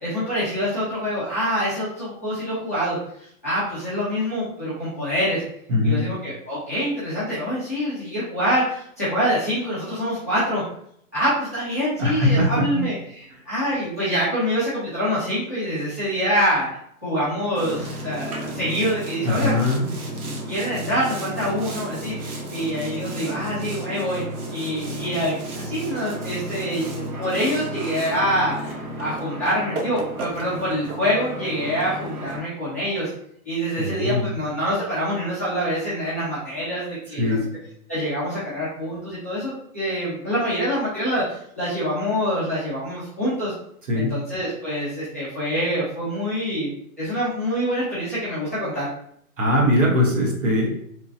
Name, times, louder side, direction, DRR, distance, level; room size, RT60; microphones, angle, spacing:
voice 1, 0.0-5.4 5.8-10.6 11.1-16.7 17.0-19.6 20.5-24.2 24.5-28.7 29.0-33.1 33.4-37.4 37.9-43.5 43.9-46.7 47.0-48.9, equal, 15° left, -12 dB, 0.3 m, -25 dB
voice 2, 5.7-6.1 12.0-12.8 19.2-19.8 33.8-34.3 37.2-37.5 43.9-44.2 49.4-50.8, left 1 dB, 60° right, -1 dB, 1.0 m, -21 dB
Boat Water vehicle, 17.5-32.4, right 1 dB, 90° right, 0.9 m, -33 dB
3.0 x 2.5 x 2.5 m, 0.68 s
hypercardioid pair, 145°, 43 cm